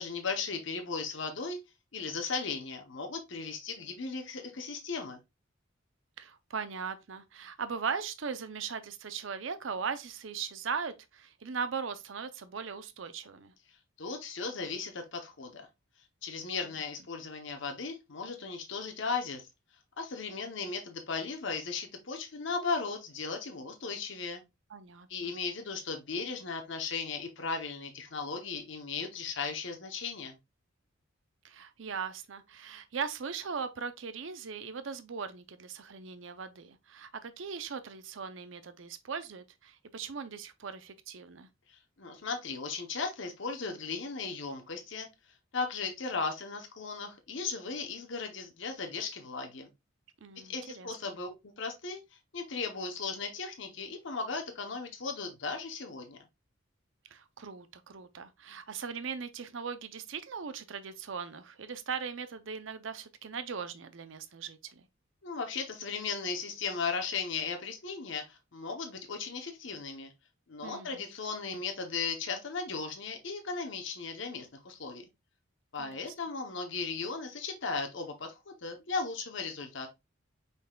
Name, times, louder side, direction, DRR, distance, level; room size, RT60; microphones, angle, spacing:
voice 1, 0.0-1.6 1.9-5.2 14.0-15.7 16.2-19.4 20.0-24.4 25.1-30.4 41.7-45.1 45.5-49.7 50.4-56.2 65.2-70.1 70.5-75.1 75.7-79.9, left 4 dB, 65° left, 0.9 m, -36 dB
voice 2, 6.2-13.5 16.6-16.7 24.7-25.3 31.4-41.5 50.2-50.9 57.1-64.9 70.6-71.0 75.8-76.1, right 6 dB, 70° right, 0.6 m, -39 dB
5.5 x 4.0 x 2.3 m
head